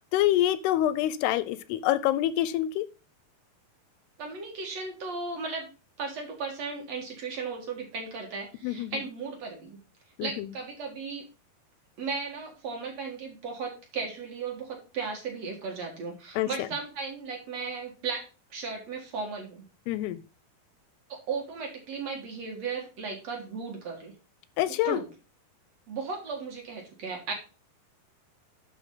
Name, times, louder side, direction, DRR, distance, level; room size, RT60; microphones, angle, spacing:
voice 1, 0.1-2.9 8.6-8.9 10.2-10.5 16.4-16.5 19.9-20.2 24.6-25.0, left 13 dB, 90° left, 15 dB, 2.7 m, -26 dB
voice 2, 4.2-5.7 6.0-9.8 10.2-11.3 12.0-18.2 18.5-19.7 21.1-24.1 24.8-25.1 25.9-27.3, right 4 dB, 50° right, 1 dB, 2.5 m, -36 dB
11.0 x 5.2 x 3.9 m, 0.31 s
omnidirectional pair, 4.6 m